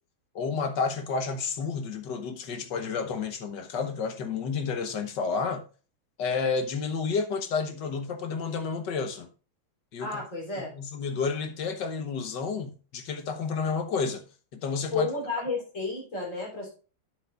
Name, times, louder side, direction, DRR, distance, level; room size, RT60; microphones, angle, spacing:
voice 1, 0.3-5.6 6.2-9.3 9.9-10.2 10.6-14.2 14.5-15.1, left 5 dB, 65° left, 1.6 m, -30 dB
voice 2, 10.0-10.7 14.9-16.7, left 3 dB, 40° left, 3.8 m, -32 dB
9.7 x 7.8 x 2.5 m
omnidirectional pair, 2.2 m